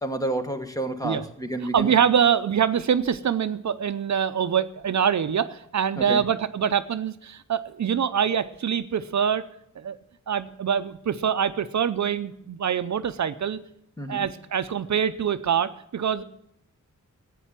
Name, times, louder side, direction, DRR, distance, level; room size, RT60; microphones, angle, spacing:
voice 1, 0.0-2.0 6.0-6.2 14.0-14.2, right 1 dB, 10° left, 7 dB, 1.4 m, -30 dB
voice 2, 1.6-9.4 9.8-10.0 10.3-13.6 14.1-16.2, right 8 dB, 65° right, 11 dB, 0.7 m, -24 dB
14.5 x 9.2 x 7.5 m, 0.74 s
wide cardioid pair, 160°, 31 cm